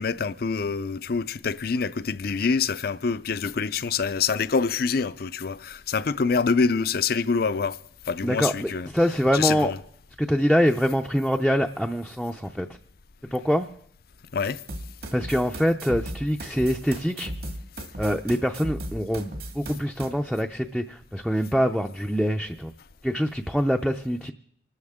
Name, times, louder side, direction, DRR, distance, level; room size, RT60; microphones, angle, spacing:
voice 1, 0.0-7.8 8.1-8.9 9.3-9.8 14.3-14.6, left 5 dB, 55° left, 0.5 m, -26 dB
voice 2, 8.2-9.7 10.2-12.7 13.3-13.7 15.1-17.3 18.0-22.7 23.0-24.3, equal, ahead, 0.5 m, -24 dB
sound 1, 14.7-20.1, right 1 dB, 60° right, 2.0 m, -36 dB
25.5 x 13.0 x 3.6 m
head